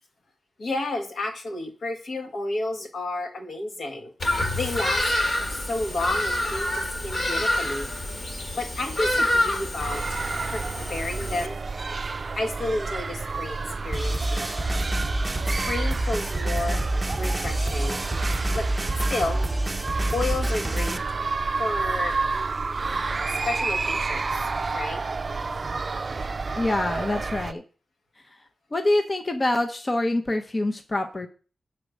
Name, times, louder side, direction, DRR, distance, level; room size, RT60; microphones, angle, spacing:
voice 1, 0.6-4.1 4.5-5.0 5.5-7.9 8.6-10.0 10.5-10.6 10.9-11.6 12.4-14.7 15.7-16.8 17.1-18.0 18.5-18.7 19.1-19.4 20.1-21.0 21.6-22.2 23.5-25.0, left 2 dB, 75° left, 3 dB, 1.8 m, -31 dB
Bird vocalization bird call bird song, 4.2-11.5, left 1 dB, 50° left, 1.8 m, -27 dB
sound 1, 9.8-27.5, right 4 dB, 45° right, 0.4 m, -30 dB
sound 2, 13.9-21.0, right 1 dB, 15° right, 0.8 m, -27 dB
voice 2, 26.6-27.6 28.7-31.3, left 1 dB, 30° left, 5 dB, 0.8 m, -25 dB
7.6 x 4.3 x 6.4 m, 0.38 s
wide cardioid pair, 105°, 0 cm